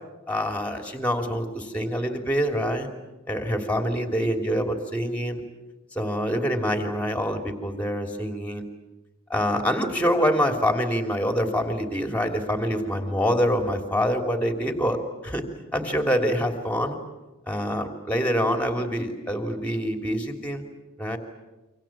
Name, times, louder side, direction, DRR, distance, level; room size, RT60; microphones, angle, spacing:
voice 1, 0.3-2.9 3.3-5.4 5.9-8.6 9.3-15.0 15.2-15.4 15.7-17.0 17.5-20.7 21.0-21.2, equal, 5° left, 5 dB, 3.1 m, -25 dB
28.5 x 25.0 x 7.5 m, 1.1 s
head